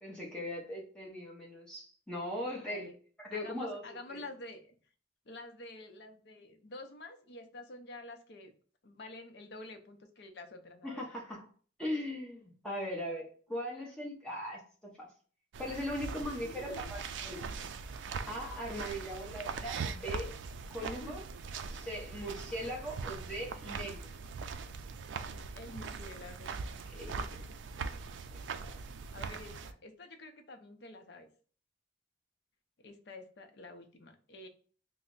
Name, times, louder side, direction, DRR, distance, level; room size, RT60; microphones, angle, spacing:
voice 1, 0.0-2.8 3.2-3.8 4.1-4.2 10.8-11.4 11.8-13.2 13.5-14.6 15.0-15.1 15.6-17.5 18.3-20.3 20.7-21.2 21.6-24.1 26.9-27.2, equal, 5° left, -3 dB, 0.8 m, -39 dB
voice 2, 2.5-3.0 3.3-4.7 5.3-8.5 8.8-11.1 16.3-16.9 20.8-21.1 25.5-26.6 29.1-31.3 32.8-34.5, left 2 dB, 60° left, 6 dB, 0.6 m, -48 dB
sound 1, 15.5-29.7, right 5 dB, 75° right, 0.3 m, -41 dB
3.2 x 2.0 x 3.8 m, 0.42 s
head